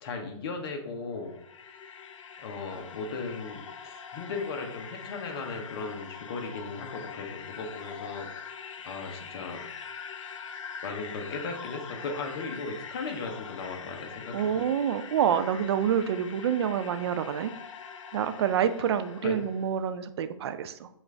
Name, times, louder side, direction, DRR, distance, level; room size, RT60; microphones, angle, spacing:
voice 1, 0.0-1.3 2.4-8.3 8.8-9.7 10.8-14.6 19.2-19.4, left 4 dB, 45° left, 4 dB, 0.9 m, -37 dB
sound 1, 1.1-19.7, left 6 dB, 70° left, 0.5 m, -43 dB
voice 2, 14.3-17.5 18.1-20.9, right 8 dB, 55° right, 11 dB, 0.4 m, -27 dB
6.1 x 2.5 x 3.3 m, 0.76 s
hypercardioid pair, 145°, 17 cm